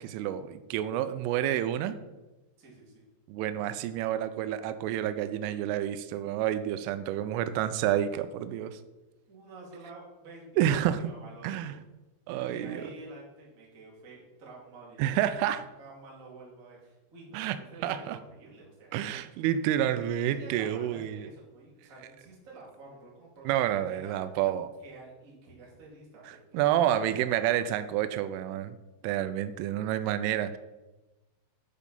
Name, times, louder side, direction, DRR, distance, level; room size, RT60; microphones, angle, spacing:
voice 1, 0.0-2.0 3.3-8.8 10.6-11.0 11.4-11.8 12.3-12.8 15.0-15.6 17.3-18.2 18.9-21.3 23.5-24.7 26.3-28.8 29.0-30.6, right 11 dB, 85° right, 12 dB, 3.1 m, -29 dB
voice 2, 2.6-3.0 9.3-10.7 11.0-11.8 12.4-15.1 15.8-19.1 20.3-24.4 24.8-27.1 27.4-27.6, right 2 dB, 30° right, -4 dB, 1.7 m, -49 dB
10.0 x 5.0 x 5.4 m, 1.1 s
omnidirectional pair, 5.6 m